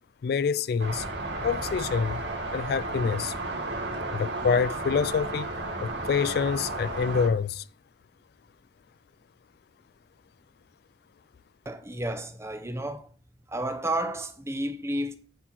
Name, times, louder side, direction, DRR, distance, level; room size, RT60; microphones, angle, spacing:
voice 1, 0.2-1.1 1.4-2.2 2.5-3.3 4.1-5.5 5.8-7.6, left 6 dB, 60° left, 0.3 m, -26 dB
sound 1, 0.8-7.3, right 2 dB, 75° right, 2.1 m, -33 dB
voice 2, 11.6-13.1 13.5-15.1, right 1 dB, 15° right, 0.8 m, -31 dB
9.8 x 4.3 x 6.1 m
head